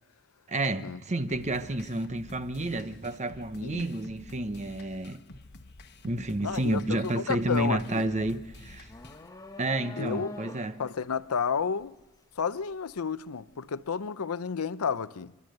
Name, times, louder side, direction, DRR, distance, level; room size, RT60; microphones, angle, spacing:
voice 1, 0.5-5.2 6.0-8.9 9.6-10.8, right 1 dB, 30° right, 0.9 m, -30 dB
sound 1, 1.3-9.3, left 2 dB, 50° left, 1.1 m, -50 dB
sound 2, 5.9-6.1 6.5-13.5, left 3 dB, 15° left, 1.0 m, -48 dB
voice 2, 6.4-8.1 10.0-10.3 10.8-11.9 12.4-15.3, left 6 dB, 80° left, 0.6 m, -31 dB
29.5 x 12.5 x 7.8 m
head